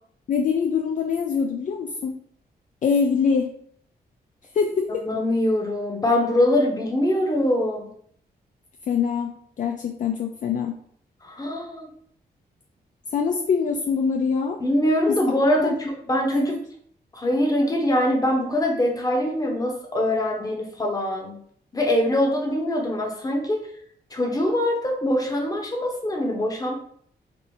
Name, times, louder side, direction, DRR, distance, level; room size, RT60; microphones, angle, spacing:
voice 1, 0.3-2.1 2.8-3.5 4.5-5.0 8.9-10.7 13.1-14.6 15.1-15.2 15.6-15.8 16.3-16.6, left 6 dB, 50° left, 3 dB, 0.4 m, -24 dB
voice 2, 5.0-7.9 11.2-11.9 14.6-16.6 17.1-21.4 21.7-23.6 24.1-26.7, left 1 dB, 20° left, 1 dB, 0.9 m, -23 dB
3.7 x 2.1 x 3.8 m, 0.63 s
cardioid pair, 85°, 17 cm